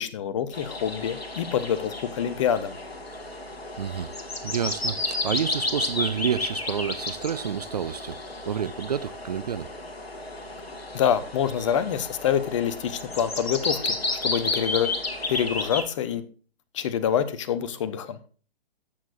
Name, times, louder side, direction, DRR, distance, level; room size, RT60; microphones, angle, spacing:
voice 1, 0.0-2.7 10.9-14.9 15.3-16.2 16.7-18.3, left 9 dB, 30° left, 0.8 m, -26 dB
sound 1, 0.5-15.8, left 2 dB, 70° left, 1.8 m, -32 dB
voice 2, 3.8-4.1 4.4-8.2 8.5-9.7, right 8 dB, 40° right, 0.5 m, -29 dB
13.5 x 8.2 x 2.4 m
figure-of-eight pair, 125°, 31 cm